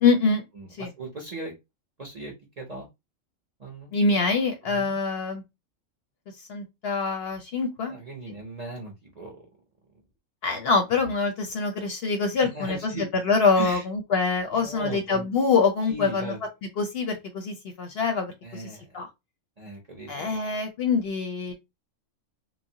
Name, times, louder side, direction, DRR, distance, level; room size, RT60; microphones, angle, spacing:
voice 1, 0.0-0.4 0.8-0.9 3.9-5.4 6.5-7.9 10.4-16.3 16.8-19.1 20.1-21.5, left 4 dB, 65° left, 0.7 m, -25 dB
voice 2, 0.6-1.5 2.0-2.9 3.6-3.9 4.6-4.9 7.8-9.4 12.4-13.1 13.5-13.8 14.5-15.3 15.9-16.4 18.4-19.0 19.6-20.4, right 2 dB, 45° right, 0.5 m, -38 dB
3.1 x 2.0 x 2.7 m
omnidirectional pair, 1.4 m